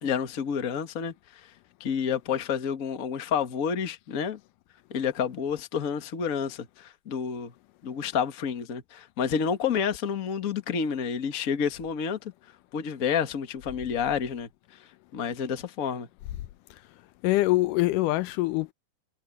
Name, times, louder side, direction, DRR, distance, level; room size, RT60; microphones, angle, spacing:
voice 1, 0.0-1.1 1.8-4.4 4.9-7.5 7.8-12.2 12.7-14.5 15.1-16.1, left 7 dB, 40° left, 1.3 m, -29 dB
voice 2, 17.2-18.7, left 18 dB, 90° left, 2.3 m, -24 dB
omnidirectional pair, 3.6 m